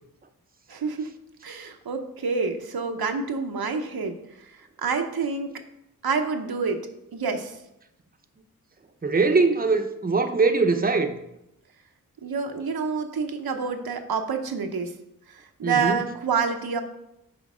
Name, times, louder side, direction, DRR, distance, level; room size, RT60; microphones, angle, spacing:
voice 1, 0.7-1.1 1.4-4.2 4.8-5.5 6.0-6.8 7.1-7.6 12.2-14.9 15.6-16.8, right 5 dB, 85° right, 0.8 m, -27 dB
voice 2, 9.0-11.2 15.6-16.0, right 4 dB, 25° right, 0.7 m, -22 dB
6.3 x 4.6 x 6.1 m
cardioid pair, 50°, 36 cm